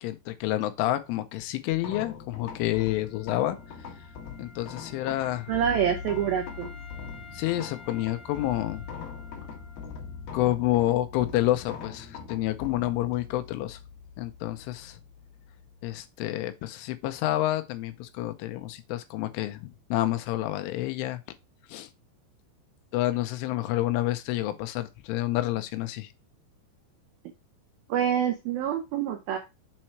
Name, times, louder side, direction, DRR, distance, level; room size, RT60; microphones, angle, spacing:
voice 1, 0.0-3.6 4.4-5.5 7.3-8.8 10.3-13.8 14.2-15.0 15.8-21.2 21.7-21.9 22.9-26.1, left 15 dB, 90° left, 3.3 m, -29 dB
sound 1, 1.7-16.0, left 6 dB, 60° left, 2.9 m, -42 dB
Wind instrument woodwind instrument, 2.6-10.3, left 3 dB, 40° left, 3.9 m, -51 dB
voice 2, 5.5-6.7 27.9-29.4, right 9 dB, 90° right, 2.0 m, -26 dB
7.6 x 4.4 x 4.5 m
omnidirectional pair, 5.5 m